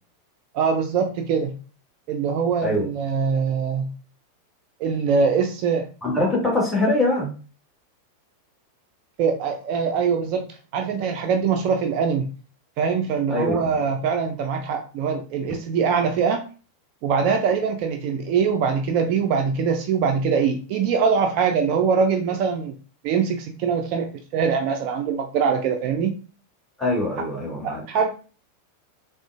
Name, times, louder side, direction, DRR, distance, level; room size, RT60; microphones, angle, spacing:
voice 1, 0.5-1.6 2.1-3.9 4.8-5.9 9.2-10.5 10.7-12.3 12.8-16.4 17.0-22.7 23.0-26.2 27.6-28.1, right 6 dB, 45° right, 4 dB, 0.4 m, -23 dB
voice 2, 6.0-7.3 13.3-13.7 26.8-27.8, left 2 dB, 10° left, -4 dB, 1.5 m, -23 dB
3.7 x 2.4 x 2.3 m, 0.37 s
figure-of-eight pair, 90°, 0 cm